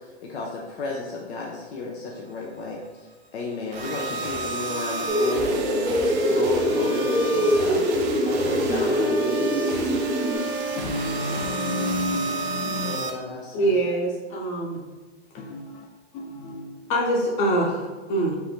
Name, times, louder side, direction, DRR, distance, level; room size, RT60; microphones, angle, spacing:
voice 1, 0.2-5.5 6.3-7.9 8.2-9.9 12.8-13.8, left 3 dB, 70° left, -2 dB, 0.8 m, -33 dB
sound 1, 3.7-13.1, right 3 dB, 40° right, 0.8 m, -31 dB
sound 2, 5.1-10.3, equal, ahead, 0.8 m, -23 dB
voice 2, 10.7-12.9 13.2-13.3 15.4-15.9 16.1-16.7, left 1 dB, 25° left, 1 dB, 0.4 m, -31 dB
voice 3, 13.5-14.8 16.9-18.4, right 1 dB, 45° left, -1 dB, 1.2 m, -24 dB
4.1 x 2.7 x 3.8 m, 1.3 s
hypercardioid pair, 120°, 34 cm